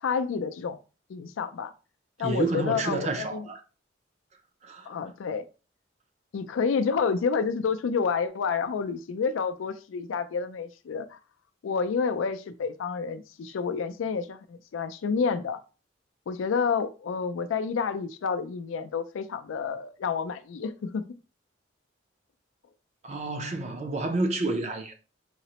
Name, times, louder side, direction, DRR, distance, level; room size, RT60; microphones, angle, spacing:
voice 1, 0.0-0.8 1.1-1.7 2.2-3.5 4.9-5.5 6.3-11.2 11.6-15.6 16.3-21.0, left 5 dB, 85° left, 0.4 m, -29 dB
voice 2, 2.2-3.6 4.6-4.9 23.0-24.9, right 2 dB, 35° right, 0.4 m, -29 dB
3.9 x 2.0 x 2.8 m
head